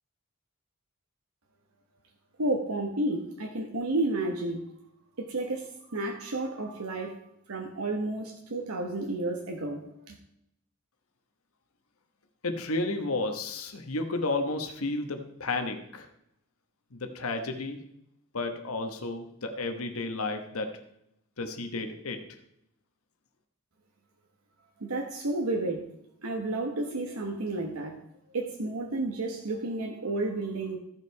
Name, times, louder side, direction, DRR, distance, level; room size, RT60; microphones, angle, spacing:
voice 1, 2.4-4.6 5.2-7.2 7.5-10.2 24.8-25.8 26.2-28.0 28.3-30.8, right 2 dB, 85° right, 2 dB, 1.1 m, -31 dB
voice 2, 12.4-16.1 16.9-17.9 18.3-20.7 21.4-22.3, left 2 dB, 85° left, 6 dB, 1.2 m, -32 dB
14.5 x 5.7 x 4.6 m, 0.78 s
head